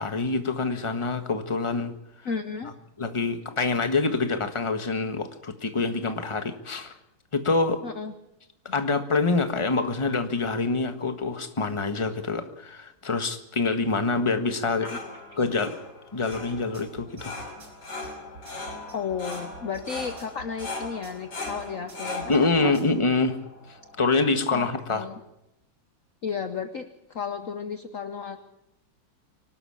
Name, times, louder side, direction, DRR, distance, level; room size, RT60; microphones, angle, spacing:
voice 1, 0.0-1.9 3.0-6.9 7.3-7.8 8.6-14.9 15.4-15.8 16.1-17.3 22.3-23.4 23.7-25.0, left 3 dB, 15° left, 8 dB, 1.4 m, -26 dB
voice 2, 2.2-2.7 7.8-8.1 14.8-15.0 15.3-15.4 18.9-22.3 22.6-22.7 24.5-25.2 26.2-28.5, left 6 dB, 50° left, 9 dB, 1.1 m, -33 dB
sound 1, 14.5-24.2, left 2 dB, 75° left, 4.5 m, -39 dB
sound 2, 16.3-23.0, right 5 dB, 65° right, 5.1 m, -47 dB
24.5 x 12.5 x 8.7 m, 0.87 s
omnidirectional pair, 2.0 m